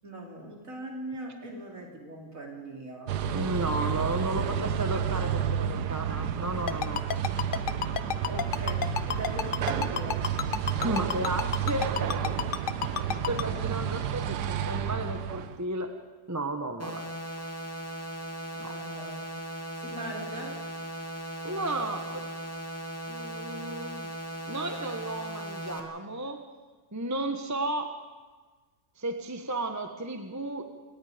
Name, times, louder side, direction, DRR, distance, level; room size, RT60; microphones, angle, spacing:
voice 1, 0.0-3.2 4.4-4.5 8.2-10.3 18.5-19.2 19.8-20.6, right 1 dB, 55° right, 0 dB, 3.9 m, -40 dB
sound 1, 3.1-15.6, right 8 dB, 80° right, 1.4 m, -31 dB
voice 2, 3.3-7.0 10.7-12.4 13.1-15.9 16.3-17.0 17.4-17.5 18.6-18.7 21.4-22.3 23.1-24.1 24.5-26.4 26.9-28.0 29.0-30.6, right 1 dB, 10° right, 6 dB, 1.1 m, -33 dB
Ringtone, 6.7-13.4, left 8 dB, 55° left, 0.6 m, -29 dB
sound 2, 16.8-25.8, right 1 dB, 10° left, 2.4 m, -38 dB
28.0 x 18.0 x 5.2 m, 1.4 s
omnidirectional pair, 1.7 m